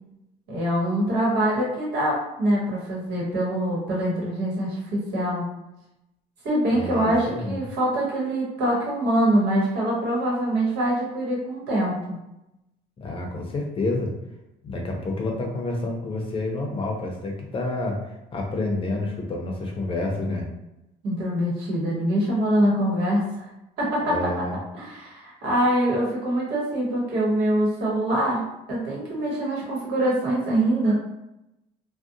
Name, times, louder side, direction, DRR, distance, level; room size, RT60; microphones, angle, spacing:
voice 1, 0.5-5.5 6.4-12.2 21.0-23.5 23.8-24.2 24.7-30.9, right 1 dB, 80° right, -4 dB, 1.1 m, -24 dB
voice 2, 6.7-7.6 13.0-14.1 14.6-20.5 24.0-24.6, left 2 dB, 35° left, 1 dB, 0.6 m, -29 dB
2.5 x 2.1 x 2.6 m, 0.89 s
cardioid pair, 110°, 17 cm